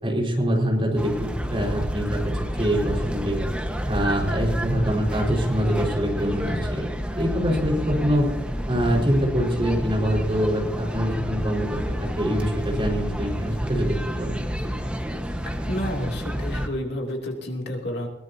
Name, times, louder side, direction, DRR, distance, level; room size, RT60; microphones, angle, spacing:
voice 1, 0.0-3.4 3.9-6.9 7.2-8.3 8.7-14.4, equal, 30° right, -2 dB, 4.8 m, -24 dB
sound 1, 1.0-16.7, equal, 5° right, 1.3 m, -29 dB
voice 2, 15.4-18.1, equal, 65° left, 1 dB, 2.7 m, -30 dB
21.5 x 18.0 x 2.8 m, 1.0 s
head